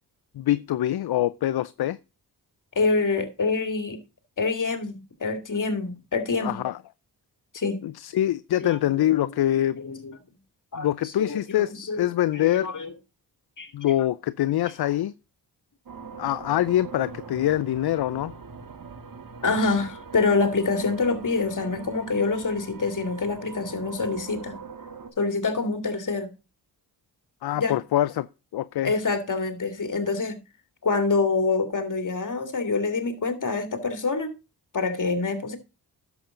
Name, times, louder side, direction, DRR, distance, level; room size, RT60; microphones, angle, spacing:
voice 1, 0.4-2.0 6.4-6.8 7.8-9.8 10.8-12.7 13.7-15.1 16.2-18.3 27.4-28.3 28.5-28.9, left 13 dB, 65° left, 0.6 m, -24 dB
voice 2, 2.7-4.0 4.4-6.6 7.5-7.8 8.5-9.3 9.8-10.1 10.7-10.9 11.2-12.1 12.3-12.9 13.6-13.7 19.4-24.6 25.2-26.3 27.6-27.7 28.8-30.4 30.8-34.3 34.7-35.6, left 3 dB, 50° left, 2.4 m, -26 dB
sound 1, 15.9-25.1, right 5 dB, 55° right, 1.8 m, -42 dB
11.0 x 7.3 x 3.8 m
cardioid pair, 60°, 41 cm